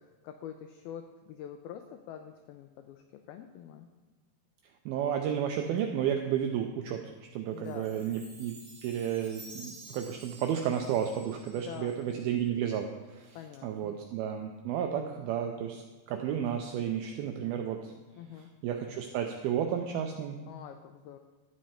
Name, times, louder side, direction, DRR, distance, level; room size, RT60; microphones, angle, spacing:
voice 1, 0.0-3.9 7.5-8.2 11.5-12.2 13.4-13.9 18.2-18.5 20.5-21.2, left 9 dB, 90° left, 6 dB, 2.1 m, -46 dB
voice 2, 4.9-7.0 7.3-13.4 13.6-15.8 16.1-17.9 18.4-20.4, right 9 dB, 85° right, 4 dB, 2.1 m, -32 dB
Chime, 7.6-12.1, right 2 dB, 45° right, 5.0 m, -51 dB
12.5 x 7.6 x 4.3 m, 1.3 s
omnidirectional pair, 4.9 m